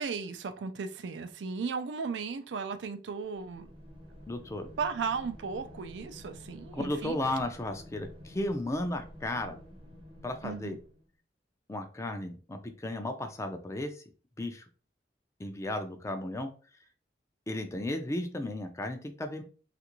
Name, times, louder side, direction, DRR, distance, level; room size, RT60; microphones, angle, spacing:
voice 1, 0.0-3.7 4.8-7.2 10.4-10.8, right 5 dB, 90° right, 0.4 m, -35 dB
sound 1, 3.4-11.1, equal, 30° right, 0.6 m, -50 dB
voice 2, 4.3-4.7 6.7-9.6 10.2-10.8 11.7-14.0 14.4-14.7 15.4-16.5 17.5-19.4, left 1 dB, 15° left, 0.4 m, -34 dB
3.3 x 2.5 x 2.9 m
head